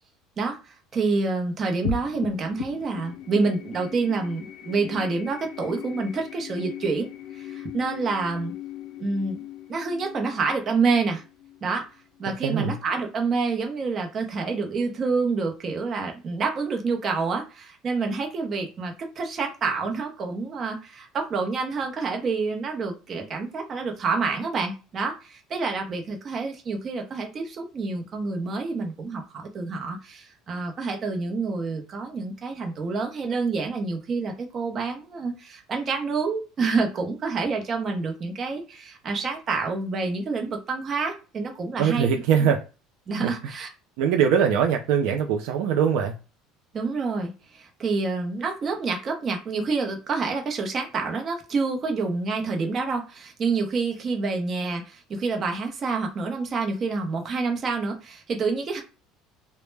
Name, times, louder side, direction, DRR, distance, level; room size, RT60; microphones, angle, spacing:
voice 1, 0.4-7.1 7.3-8.5 9.0-9.4 9.7-11.2 11.6-11.9 12.2-42.1 43.1-43.7 46.7-58.8, right 4 dB, 35° right, 3 dB, 0.7 m, -28 dB
sound 1, 1.8-12.5, left 9 dB, 80° left, 0.3 m, -38 dB
voice 2, 12.4-12.8 41.8-42.6 43.2-43.5 44.0-46.1, right 7 dB, 75° right, 3 dB, 0.4 m, -22 dB
2.1 x 2.0 x 3.2 m, 0.33 s
cardioid pair, 125°, 0 cm